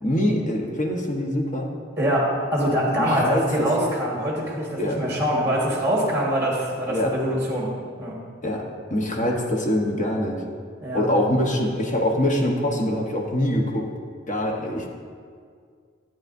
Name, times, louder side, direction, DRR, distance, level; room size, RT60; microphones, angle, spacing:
voice 1, 0.0-1.7 3.0-3.7 4.8-5.0 6.9-7.1 8.4-8.6 8.9-10.4 10.9-13.9 14.3-14.9, left 1 dB, 40° left, 0 dB, 1.1 m, -24 dB
voice 2, 2.0-7.7 8.0-8.1 10.8-11.1, equal, 15° right, -3 dB, 1.5 m, -24 dB
12.0 x 8.8 x 2.6 m, 2.1 s
head